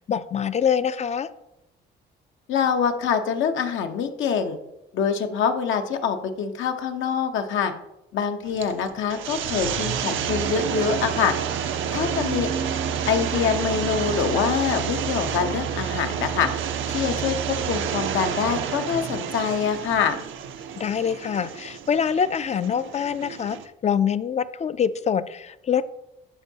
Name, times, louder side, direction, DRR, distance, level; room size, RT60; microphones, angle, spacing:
voice 1, 0.1-1.3 20.8-23.6 23.8-25.8, left 7 dB, 35° left, 14 dB, 0.4 m, -24 dB
voice 2, 2.5-4.6 4.9-7.7 8.1-11.3 11.9-12.5 13.0-16.5 16.9-20.2, left 7 dB, 75° left, 6 dB, 0.8 m, -25 dB
sound 1, 8.5-23.6, right 8 dB, 75° right, 0.6 m, -29 dB
13.0 x 4.5 x 2.8 m, 0.88 s
cardioid pair, 90°, 20 cm